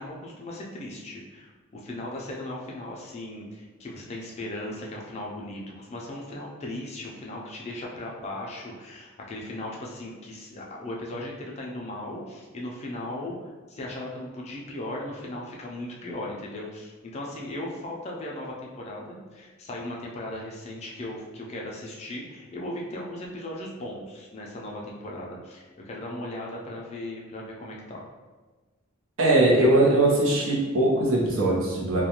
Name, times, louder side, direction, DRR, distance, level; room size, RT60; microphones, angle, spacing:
voice 1, 0.0-28.0, left 1 dB, 30° left, -2 dB, 0.3 m, -37 dB
voice 2, 29.2-32.0, right 2 dB, 70° right, -4 dB, 0.7 m, -21 dB
2.4 x 2.2 x 2.8 m, 1.3 s
head